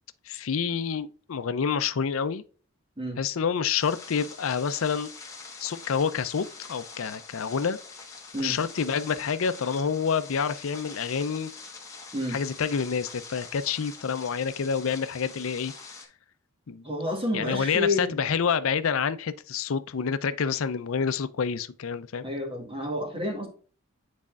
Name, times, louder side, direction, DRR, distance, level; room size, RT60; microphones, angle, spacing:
voice 1, 0.3-2.4 3.2-5.1 5.6-7.8 8.4-11.5 12.3-15.7 16.7-16.8 17.3-22.3, left 6 dB, 75° left, 0.5 m, -28 dB
sound 1, 3.8-16.1, left 4 dB, 15° left, 1.4 m, -44 dB
voice 2, 16.8-18.2 22.2-23.5, left 1 dB, 25° right, 1.9 m, -29 dB
9.5 x 4.2 x 2.4 m
head